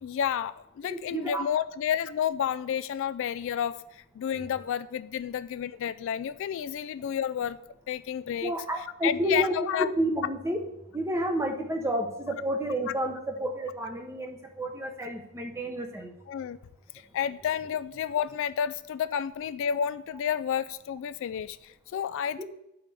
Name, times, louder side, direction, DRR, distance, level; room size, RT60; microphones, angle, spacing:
voice 1, 0.0-7.6 7.9-8.5 9.0-9.9 16.3-16.6 17.1-22.4, left 9 dB, 65° left, 15 dB, 0.3 m, -30 dB
voice 2, 0.9-1.5 8.4-10.6 10.9-16.1, right 1 dB, 15° right, 3 dB, 0.9 m, -30 dB
12.0 x 4.9 x 3.4 m, 0.84 s
head